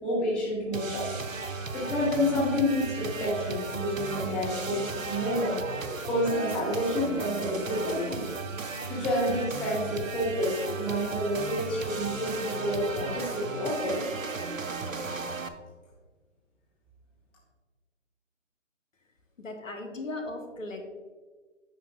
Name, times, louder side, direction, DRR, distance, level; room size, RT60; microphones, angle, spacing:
voice 1, 0.0-1.1 1.7-5.6 6.1-8.3 8.9-14.1, left 1 dB, 5° left, -7 dB, 0.5 m, -29 dB
sound 1, 0.7-15.5, right 4 dB, 90° right, 0.9 m, -35 dB
voice 2, 19.4-20.8, left 2 dB, 85° left, 4 dB, 1.6 m, -37 dB
9.0 x 5.6 x 3.7 m, 1.4 s
figure-of-eight pair, 140°, 38 cm